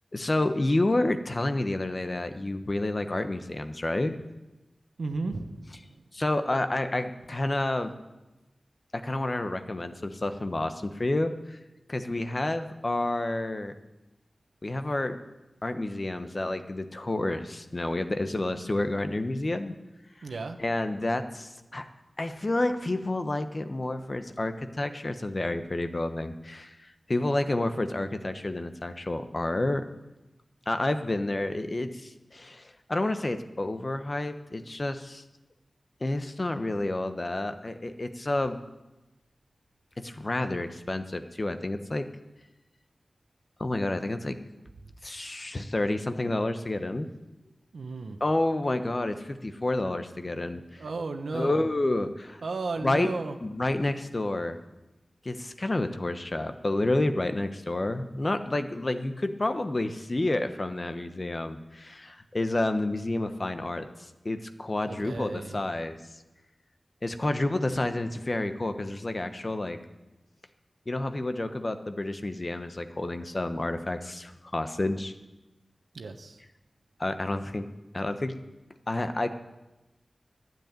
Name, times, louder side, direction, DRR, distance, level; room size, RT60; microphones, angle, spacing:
voice 1, 0.1-4.2 6.1-7.9 8.9-11.6 11.9-13.7 14.6-15.2 15.6-19.7 20.6-21.9 22.2-26.8 27.1-29.8 30.7-35.2 36.0-38.6 40.0-42.1 43.6-44.4 45.0-47.1 48.2-50.8 51.3-52.4 52.8-53.1 53.4-54.6 55.2-66.0 67.0-69.8 70.9-75.1 77.0-77.6 77.9-78.3 78.9-79.3, left 2 dB, 45° left, 8 dB, 1.1 m, -29 dB
voice 2, 5.0-6.0 20.2-20.6 47.7-48.2 50.8-51.6 52.4-53.4 64.8-65.6 75.9-76.4, right 3 dB, 90° right, 7 dB, 1.0 m, -34 dB
12.0 x 7.8 x 9.2 m, 1.0 s
cardioid pair, 45°, 0 cm